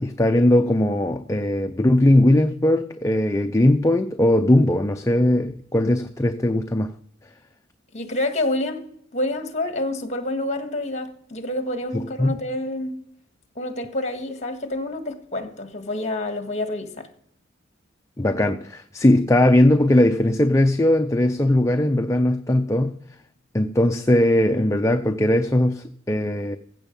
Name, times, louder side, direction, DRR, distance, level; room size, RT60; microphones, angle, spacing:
voice 1, 0.0-6.9 11.9-12.4 18.2-23.0 23.5-26.6, left 1 dB, 15° left, 0.5 m, -19 dB
voice 2, 7.9-8.8 9.1-13.0 13.5-17.1, left 1 dB, 35° left, 1.7 m, -28 dB
15.5 x 7.2 x 5.4 m
head